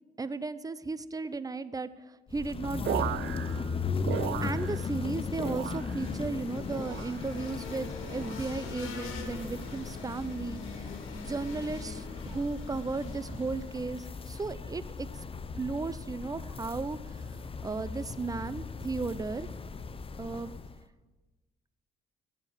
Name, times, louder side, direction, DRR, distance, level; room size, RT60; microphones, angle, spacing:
voice 1, 0.2-1.9 2.3-3.1 4.4-15.1 15.6-17.3 17.6-19.5 20.2-20.5, right 3 dB, 20° right, 15 dB, 0.6 m, -35 dB
sound 1, 2.3-20.8, left 4 dB, 30° left, 0.6 m, -37 dB
sound 2, 2.8-5.1 5.3-6.2 6.7-7.4 8.0-8.5 9.3-9.7 10.7-11.0, right 14 dB, 70° right, 0.4 m, -37 dB
sound 3, 4.2-14.0, left 4 dB, 85° left, 2.2 m, -46 dB
15.5 x 7.1 x 7.8 m, 1.3 s
cardioid pair, 90°, 20 cm